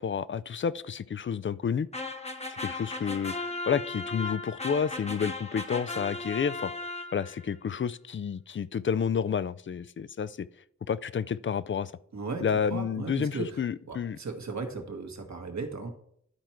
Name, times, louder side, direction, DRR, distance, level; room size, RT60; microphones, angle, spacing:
voice 1, 0.0-1.9 2.5-3.3 3.7-6.7 7.1-10.5 10.9-11.9 12.4-14.2, left 7 dB, 45° left, 17 dB, 0.4 m, -30 dB
sound 1, 1.9-7.5, left 3 dB, 20° left, 0.9 m, -36 dB
voice 2, 12.1-13.6 13.9-15.9, right 4 dB, 70° right, 4 dB, 1.5 m, -36 dB
11.5 x 4.5 x 4.4 m, 0.67 s
cardioid pair, 50°, 29 cm